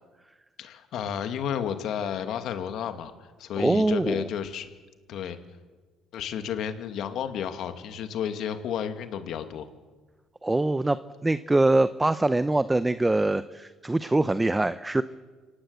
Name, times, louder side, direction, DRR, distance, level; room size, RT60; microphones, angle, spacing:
voice 1, 0.6-4.7 5.1-5.4 6.1-9.7, left 8 dB, 65° left, 8 dB, 2.4 m, -32 dB
voice 2, 3.6-4.3 10.4-15.0, right 2 dB, 10° right, 14 dB, 0.7 m, -23 dB
27.0 x 17.5 x 8.3 m, 1.3 s
cardioid pair, 100°, 0 cm